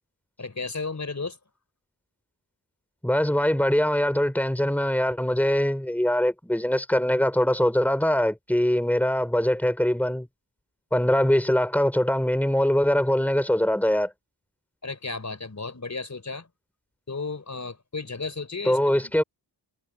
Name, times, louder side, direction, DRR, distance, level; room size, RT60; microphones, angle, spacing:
voice 1, 0.4-1.4 14.8-16.5 17.1-19.1, left 4 dB, 40° left, 4.5 m, -34 dB
voice 2, 3.0-10.3 10.9-14.1 18.7-19.2, left 1 dB, 5° left, 4.2 m, -22 dB
wide cardioid pair, 90°, 44 cm